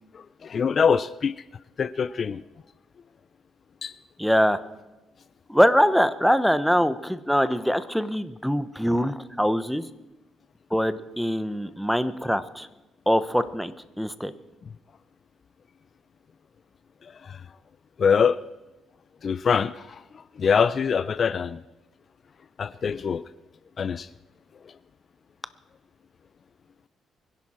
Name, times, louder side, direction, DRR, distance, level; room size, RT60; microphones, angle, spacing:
voice 1, 0.1-1.3 1.8-2.4 3.8-3.9 17.0-17.4 18.0-18.4 19.2-20.0 20.4-21.6 22.6-23.2 23.8-24.1, left 6 dB, 50° left, 17 dB, 0.4 m, -24 dB
voice 2, 4.2-4.6 5.5-9.8 10.7-12.7 13.1-14.3, equal, ahead, 12 dB, 0.9 m, -23 dB
24.0 x 11.0 x 4.4 m, 1.0 s
cardioid pair, 90°, 0 cm